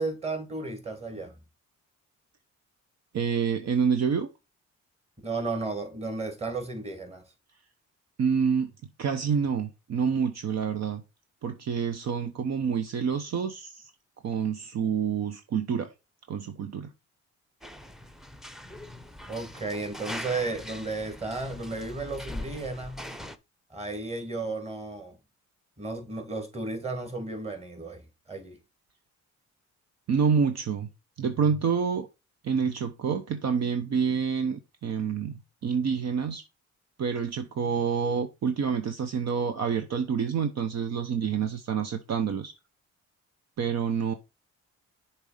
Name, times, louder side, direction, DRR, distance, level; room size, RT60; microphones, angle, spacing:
voice 1, 0.0-1.3 5.2-7.2 19.3-23.1 23.7-25.2 25.8-28.6, right 3 dB, 20° right, 2.7 m, -34 dB
voice 2, 3.1-4.3 8.2-8.7 9.0-11.0 11.4-13.9 14.2-15.9 16.3-16.9 30.1-30.9 31.2-32.1 32.4-36.4 37.0-42.5 43.6-44.1, right 6 dB, 60° right, 1.0 m, -27 dB
sound 1, 17.6-23.4, left 1 dB, ahead, 0.8 m, -41 dB
6.8 x 4.4 x 5.1 m
cardioid pair, 90°, 30 cm